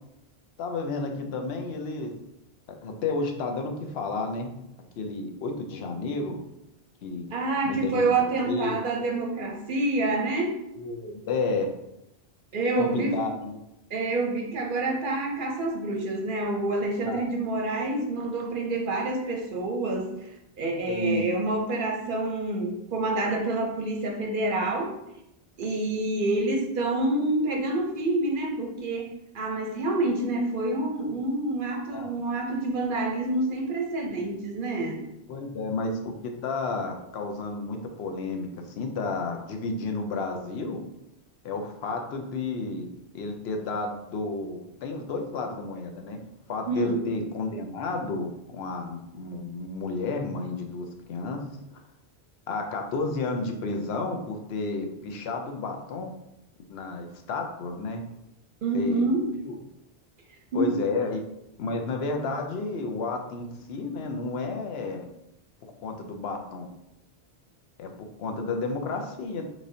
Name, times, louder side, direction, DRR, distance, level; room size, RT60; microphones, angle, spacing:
voice 1, 0.6-2.1 2.8-4.5 5.0-6.4 7.0-7.3 7.6-8.0 8.5-8.8 10.8-11.7 12.8-13.6 17.0-17.3 20.9-21.4 31.9-32.1 34.1-34.2 35.3-40.8 41.4-42.9 43.1-46.2 46.5-51.4 52.5-56.1 56.7-58.0 58.7-59.1 59.4-59.6 60.5-61.2 61.6-65.1 65.8-66.7 67.8-67.9 68.2-69.4, left 3 dB, 75° left, 4 dB, 0.8 m, -31 dB
voice 2, 7.3-10.6 12.5-13.2 13.9-20.3 20.6-24.9 25.6-35.0 46.7-47.0 58.6-59.3 60.5-60.7, right 2 dB, 60° right, 2 dB, 0.7 m, -27 dB
3.8 x 3.2 x 2.6 m, 0.85 s
omnidirectional pair, 1.1 m